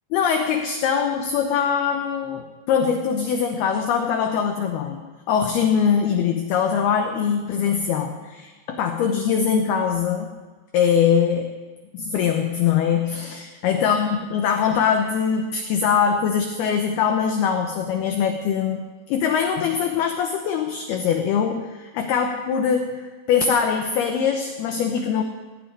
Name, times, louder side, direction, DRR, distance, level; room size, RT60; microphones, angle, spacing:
voice 1, 0.1-5.0 5.3-10.3 10.7-11.5 12.1-18.8 19.1-22.9 23.3-25.2, left 7 dB, 75° left, 4 dB, 2.4 m, -22 dB
17.0 x 7.3 x 9.8 m, 1.4 s
omnidirectional pair, 5.6 m